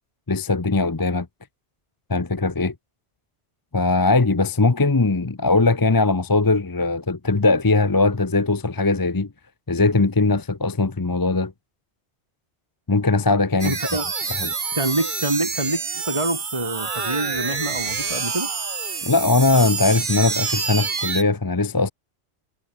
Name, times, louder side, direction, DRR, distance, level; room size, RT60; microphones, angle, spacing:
voice 1, 0.3-1.3 2.1-2.7 3.7-9.3 9.7-11.5 12.9-13.8 14.3-14.5 19.0-21.9, left 3 dB, 20° left, 0.8 m, -20 dB
voice 2, 13.6-14.1 14.7-18.5, right 2 dB, 25° right, 3.4 m, -26 dB
sound 1, 13.6-21.2, right 5 dB, 45° right, 1.4 m, -27 dB
omnidirectional pair, 1.2 m